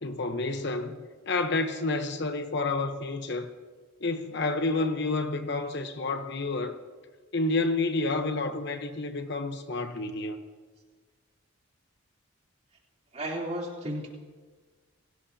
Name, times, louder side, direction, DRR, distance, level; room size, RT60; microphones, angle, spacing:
voice 1, 0.0-3.5 4.0-6.8 7.3-10.4, left 3 dB, 50° left, 1.0 m, -29 dB
voice 2, 13.1-14.1, right 1 dB, 30° right, 3.3 m, -33 dB
30.0 x 17.0 x 2.8 m
head